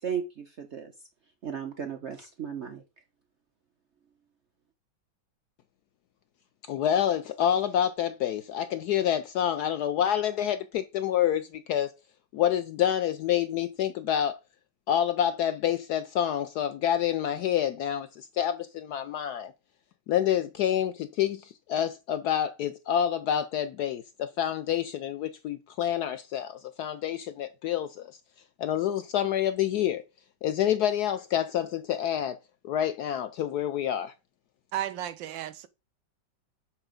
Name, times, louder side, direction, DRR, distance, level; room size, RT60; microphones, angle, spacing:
voice 1, 0.0-0.9 1.4-2.8, right 7 dB, 55° right, 0.7 m, -35 dB
voice 2, 6.7-11.9 12.3-14.4 14.9-19.5 20.1-28.1 28.6-30.0 30.4-32.4 32.6-34.1, left 10 dB, 75° left, 0.9 m, -28 dB
voice 3, 34.7-35.7, right 12 dB, 75° right, 1.4 m, -33 dB
6.7 x 4.6 x 5.0 m
omnidirectional pair, 2.1 m